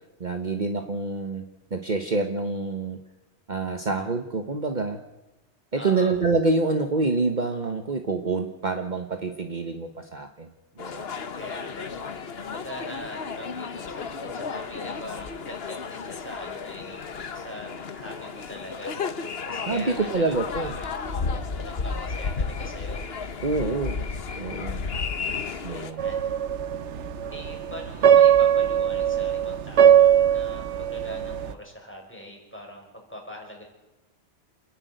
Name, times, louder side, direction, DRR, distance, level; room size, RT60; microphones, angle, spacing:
voice 1, 0.2-1.5 1.7-3.0 3.5-5.0 5.7-10.5 10.8-11.1 19.7-20.7 23.4-24.0 24.4-24.8 25.6-26.0, right 3 dB, 40° right, 6 dB, 1.3 m, -27 dB
voice 2, 5.7-6.1 11.4-11.9 12.4-17.0 17.3-18.9 19.5-23.3 25.7-26.2 27.3-33.6, equal, 10° left, 0 dB, 5.5 m, -42 dB
sound 1, 10.8-25.9, left 5 dB, 60° left, 1.4 m, -33 dB
sound 2, 26.0-31.5, right 9 dB, 85° right, 1.2 m, -20 dB
27.5 x 11.0 x 9.3 m, 1.0 s
omnidirectional pair, 1.2 m